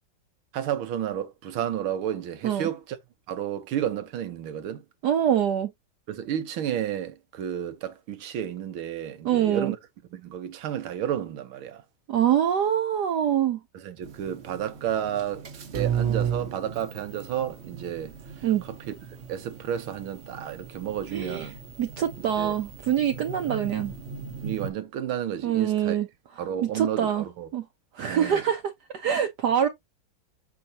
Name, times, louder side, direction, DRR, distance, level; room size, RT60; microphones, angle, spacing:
voice 1, 0.5-3.0 3.3-4.8 6.1-9.8 10.1-11.8 13.7-15.5 15.7-18.9 19.3-21.6 22.4-22.5 24.4-26.0 26.4-27.5 28.0-28.4, right 10 dB, 90° right, 1.9 m, -31 dB
voice 2, 5.0-5.7 9.2-9.7 12.1-13.6 18.4-18.6 21.1-21.5 21.8-23.9 25.4-26.1 26.6-27.2 27.5-27.6 27.9-28.6 28.9-29.7, right 9 dB, 65° right, 1.2 m, -24 dB
sound 1, 14.0-24.7, right 8 dB, 45° right, 1.0 m, -35 dB
7.7 x 4.7 x 2.8 m
omnidirectional pair, 2.2 m